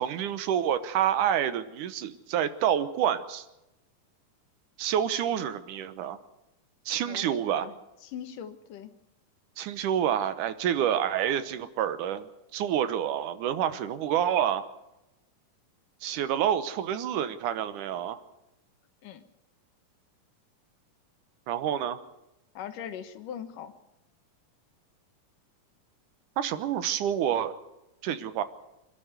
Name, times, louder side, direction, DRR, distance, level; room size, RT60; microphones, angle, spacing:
voice 1, 0.0-3.4 4.8-6.2 6.9-7.7 9.6-12.3 12.5-14.7 16.0-18.2 21.5-22.0 26.4-27.5 28.0-28.4, right 10 dB, 75° right, 12 dB, 2.4 m, -28 dB
voice 2, 7.0-7.7 8.0-8.9 19.0-19.2 22.5-23.7, left 9 dB, 75° left, 10 dB, 2.8 m, -40 dB
26.0 x 12.0 x 8.1 m, 0.93 s
omnidirectional pair, 3.8 m